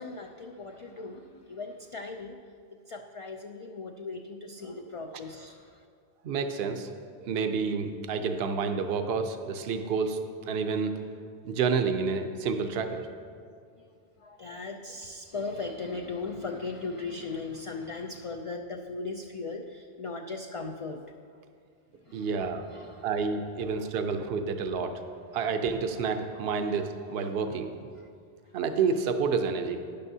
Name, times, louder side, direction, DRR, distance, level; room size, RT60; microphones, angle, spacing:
voice 1, 0.0-2.4 2.7-5.9 13.8-13.9 14.2-21.1 22.0-22.4 22.7-23.1 23.6-23.9 25.3-25.4 28.0-28.1, left 3 dB, 50° left, 3 dB, 0.4 m, -38 dB
voice 2, 6.2-6.9 7.2-10.2 10.5-10.9 11.4-13.1 22.1-22.7 23.0-24.9 25.3-27.7 28.5-29.8, right 5 dB, 75° right, 7 dB, 0.8 m, -29 dB
12.0 x 10.0 x 2.7 m, 2.3 s
omnidirectional pair, 1.1 m